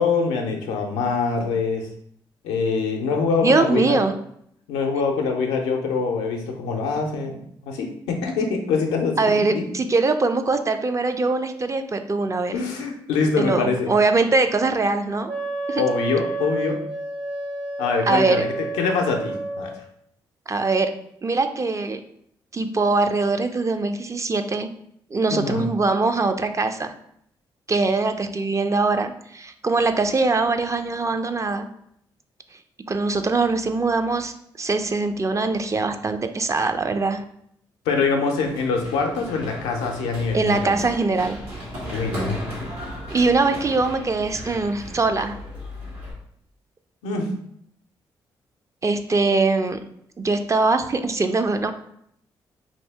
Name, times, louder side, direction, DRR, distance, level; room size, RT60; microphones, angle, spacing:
voice 1, 0.0-1.9 2.4-4.0 4.7-7.4 7.6-9.6 12.5-13.9 15.8-16.8 17.8-19.7 25.3-25.7 37.9-40.8 41.9-42.6 47.0-47.3, left 4 dB, 85° left, 2 dB, 0.5 m, -24 dB
voice 2, 3.4-4.1 9.2-12.5 13.4-15.3 15.7-15.8 18.1-18.4 20.5-20.9 21.2-22.0 22.5-24.7 25.1-26.9 27.7-31.7 32.9-34.3 34.6-37.2 40.3-41.4 43.1-45.4 48.8-49.8 50.2-51.7, right 3 dB, 30° right, 8 dB, 0.4 m, -22 dB
Wind instrument woodwind instrument, 15.3-19.7, right 2 dB, 60° right, 1.2 m, -30 dB
Run, 38.4-46.1, equal, 90° right, 1.2 m, -36 dB
2.7 x 2.7 x 3.2 m, 0.70 s
hypercardioid pair, 45°, 11 cm